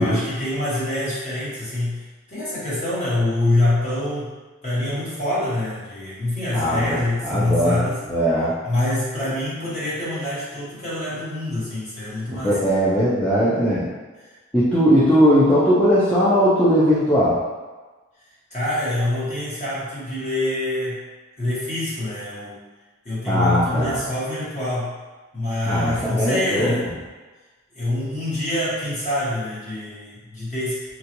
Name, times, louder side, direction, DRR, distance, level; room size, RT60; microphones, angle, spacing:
voice 1, 0.0-2.0 2.3-4.3 4.6-8.0 8.6-12.6 14.2-14.3 18.5-21.0 21.4-22.6 23.0-24.9 25.3-26.9 27.7-31.0, left 1 dB, 35° left, -9 dB, 1.1 m, -25 dB
voice 2, 6.5-7.8 8.1-8.5 12.4-13.9 14.5-17.4 23.3-24.0 25.7-26.9, equal, 5° left, -11 dB, 0.4 m, -19 dB
2.9 x 2.4 x 2.9 m, 1.3 s
head